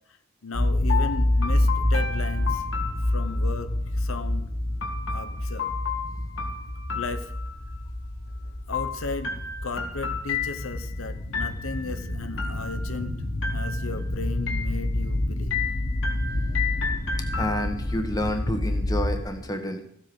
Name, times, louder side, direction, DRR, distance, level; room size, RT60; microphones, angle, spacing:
voice 1, 0.4-2.6 3.1-4.5 5.1-5.7 6.9-7.3 8.7-13.1 13.5-15.6, left 3 dB, 80° left, 9 dB, 1.0 m, -36 dB
sound 1, 0.5-19.2, left 1 dB, 45° left, 2.4 m, -28 dB
sound 2, 0.9-3.6 4.8-7.8 8.7-10.9 11.3-11.9 12.4-13.1 13.4-14.1 14.5-15.1 15.5-18.0, left 6 dB, 65° left, 2.1 m, -33 dB
voice 2, 17.4-19.8, equal, 20° left, 5 dB, 1.5 m, -29 dB
15.0 x 8.3 x 6.2 m, 0.72 s
head